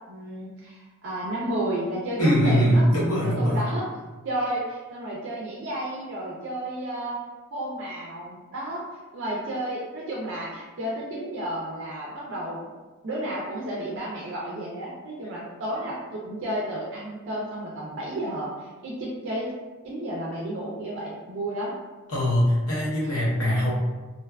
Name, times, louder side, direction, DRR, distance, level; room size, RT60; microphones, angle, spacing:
voice 1, 0.1-2.8 3.2-3.9 4.2-7.2 7.5-8.8 9.1-12.7 13.0-19.5 19.8-21.7 23.0-23.2, right 1 dB, 55° right, -4 dB, 0.4 m, -32 dB
voice 2, 2.2-3.6 22.1-23.7, equal, 75° left, -5 dB, 0.8 m, -21 dB
2.5 x 2.2 x 2.3 m, 1.2 s
head